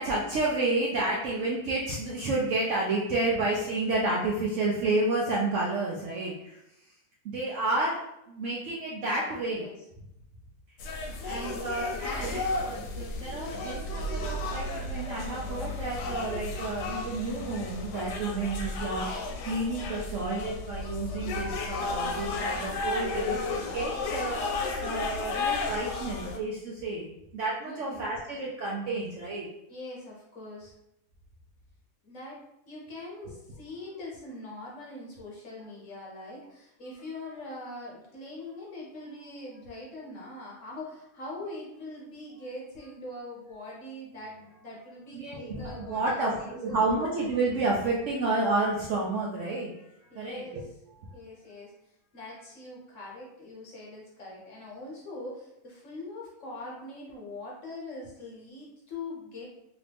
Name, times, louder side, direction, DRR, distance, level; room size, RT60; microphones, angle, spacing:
voice 1, 0.0-6.6 7.2-8.0 8.3-9.6 11.2-29.5 45.1-49.7 50.1-50.6, right 2 dB, 65° right, -4 dB, 0.7 m, -30 dB
voice 2, 9.2-9.9 11.3-12.0 22.0-22.7 27.6-28.1 29.7-30.7 32.0-46.9 50.1-50.7 51.1-59.6, left 2 dB, 55° left, -4 dB, 1.1 m, -43 dB
sound 1, 10.8-26.4, left 3 dB, 85° left, 1.2 m, -33 dB
3.0 x 2.6 x 3.3 m, 0.82 s
omnidirectional pair, 1.7 m